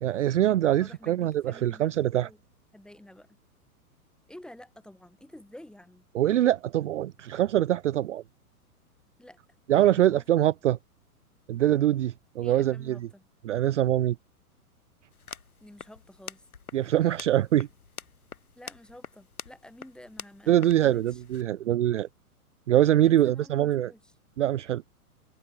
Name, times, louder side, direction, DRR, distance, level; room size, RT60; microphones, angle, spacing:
voice 1, 0.0-2.3 6.1-8.2 9.7-10.8 11.5-13.0 13.5-14.2 16.7-17.7 20.5-22.1 22.7-23.9 24.4-24.8, right 12 dB, 50° right, 0.6 m, -24 dB
voice 2, 0.8-2.4 2.7-3.4 4.3-6.1 9.2-9.4 9.7-10.2 12.4-13.2 15.6-16.5 18.6-21.2 22.9-24.1, left 1 dB, ahead, 7.4 m, -50 dB
sound 1, 15.1-21.4, left 6 dB, 70° left, 6.7 m, -46 dB
figure-of-eight pair, 105°, 45 cm